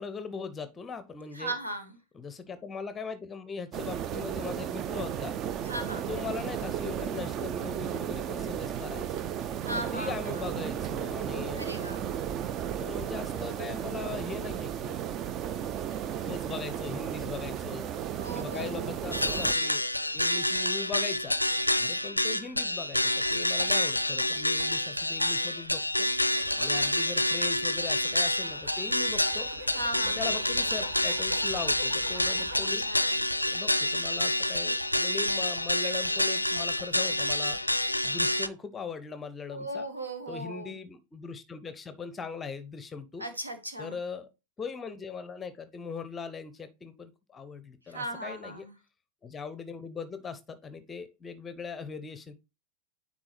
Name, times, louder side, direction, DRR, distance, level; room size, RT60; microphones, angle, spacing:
voice 1, 0.0-1.5 2.1-5.4 6.1-9.2 9.7-11.8 12.8-15.0 16.2-18.1 18.3-19.8 20.1-21.4 21.8-26.1 26.6-29.5 30.0-32.8 33.5-37.6 38.0-39.9 40.3-43.3 43.8-44.3 44.6-48.7 49.2-52.4, left 5 dB, 20° left, 13 dB, 0.6 m, -40 dB
voice 2, 1.3-2.0 5.6-6.0 9.6-10.4 11.5-12.1 18.2-18.9 29.7-30.3 32.5-33.2 39.5-40.7 43.2-44.0 47.9-48.7, right 1 dB, 85° right, 8 dB, 1.1 m, -37 dB
sound 1, 3.7-19.5, right 9 dB, 35° right, 0.4 m, -34 dB
sound 2, 19.1-38.5, left 1 dB, 90° left, 0.4 m, -28 dB
sound 3, 26.1-32.8 33.2-33.7, right 1 dB, 65° right, 1.8 m, -46 dB
9.7 x 3.7 x 3.1 m, 0.28 s
figure-of-eight pair, 90°, 0 cm